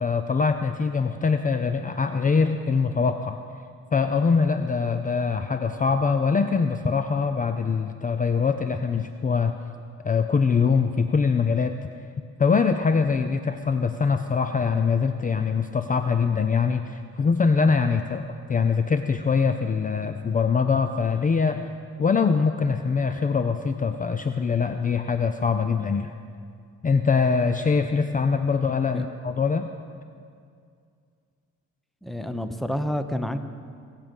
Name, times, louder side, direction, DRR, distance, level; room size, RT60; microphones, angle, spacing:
voice 1, 0.0-3.4 3.9-9.5 10.0-11.8 12.4-21.7 22.0-26.1 26.8-29.7, left 5 dB, 25° left, 8 dB, 0.5 m, -23 dB
voice 2, 32.0-33.4, equal, ahead, 9 dB, 0.8 m, -29 dB
22.0 x 7.5 x 5.3 m, 2.2 s
cardioid pair, 90°, 30 cm